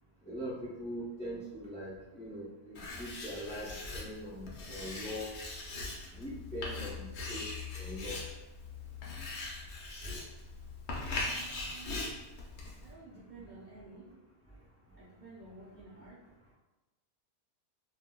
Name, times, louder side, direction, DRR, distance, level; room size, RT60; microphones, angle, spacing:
voice 1, 0.3-5.3 6.2-7.4 7.8-8.2, equal, 10° left, -7 dB, 0.3 m, -42 dB
Writing, 2.8-12.9, left 3 dB, 60° left, 0.8 m, -40 dB
voice 2, 11.2-12.1 12.8-14.2 14.9-16.5, right 3 dB, 70° right, -6 dB, 0.4 m, -53 dB
3.6 x 2.6 x 2.2 m, 1.1 s
omnidirectional pair, 1.5 m